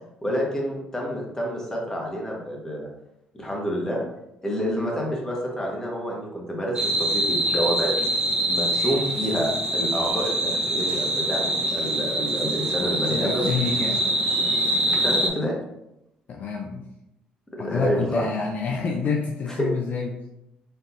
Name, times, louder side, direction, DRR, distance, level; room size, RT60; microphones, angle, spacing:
voice 1, 0.2-2.9 3.4-4.0 4.4-7.9 8.5-13.5 15.0-15.5 17.6-18.2 19.5-19.7, equal, 15° left, -2 dB, 1.4 m, -28 dB
sound 1, 6.8-15.3, right 1 dB, 25° right, 1.2 m, -24 dB
voice 2, 13.1-14.1 16.3-16.9 17.6-20.3, left 5 dB, 55° left, 1 dB, 0.6 m, -28 dB
4.5 x 3.7 x 2.6 m, 0.84 s
cardioid pair, 80°, 3 cm